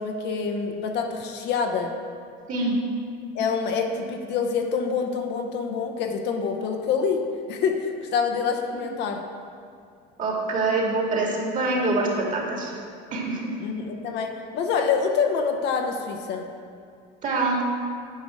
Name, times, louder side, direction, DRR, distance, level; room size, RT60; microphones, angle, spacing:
voice 1, 0.0-2.0 3.3-9.3 13.6-16.5, left 5 dB, 60° left, 4 dB, 0.9 m, -26 dB
voice 2, 10.2-12.8 13.1-13.4 17.2-17.6, right 2 dB, 40° right, -1 dB, 1.9 m, -25 dB
9.9 x 5.1 x 4.8 m, 2.3 s
supercardioid pair, 115°, 20 cm